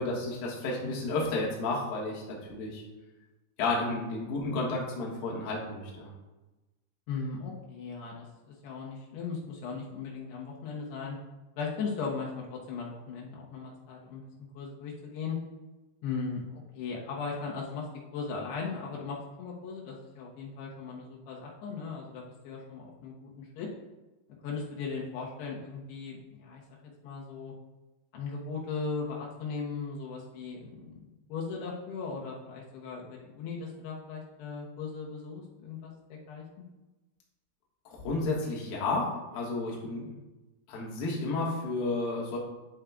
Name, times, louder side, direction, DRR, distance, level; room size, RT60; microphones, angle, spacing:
voice 1, 0.0-2.8 3.6-6.1 37.9-40.0 40.7-42.4, left 2 dB, 70° left, -4 dB, 3.2 m, -32 dB
voice 2, 7.1-11.2 11.6-14.2 14.5-15.4 16.0-17.9 18.1-23.7 24.4-26.6 27.0-27.5 28.1-31.0 31.3-36.5, left 5 dB, 85° left, -3 dB, 3.2 m, -38 dB
10.5 x 7.4 x 2.3 m, 1.1 s
omnidirectional pair, 4.6 m